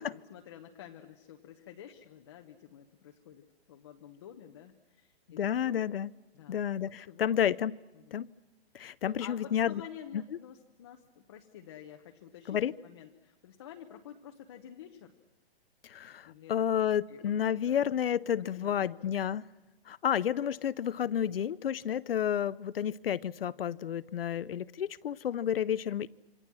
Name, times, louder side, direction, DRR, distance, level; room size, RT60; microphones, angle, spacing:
voice 1, 0.0-5.8 6.3-6.6 7.1-7.4 7.9-8.1 9.2-15.1 16.3-16.5 17.1-17.9 18.4-19.0, left 9 dB, 25° left, 3 dB, 0.9 m, -50 dB
voice 2, 5.3-6.1 6.5-7.7 8.1-8.3 8.7-9.8 12.5-12.7 15.8-19.4 19.9-26.1, left 9 dB, 65° left, 19 dB, 0.7 m, -31 dB
27.0 x 25.5 x 6.1 m, 1.1 s
hypercardioid pair, 175°, 31 cm